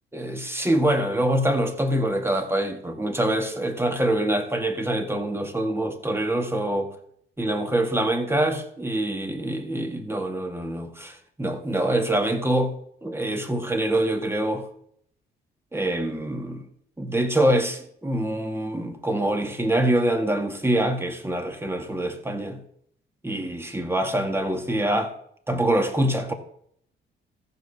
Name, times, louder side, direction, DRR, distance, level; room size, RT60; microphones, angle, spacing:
voice 1, 0.1-6.9 7.4-12.7 13.0-14.7 15.7-16.6 17.0-22.6 23.2-25.1 25.5-26.3, right 1 dB, 10° right, 1.8 m, -25 dB
14.0 x 5.3 x 6.6 m
cardioid pair, 90°, 20 cm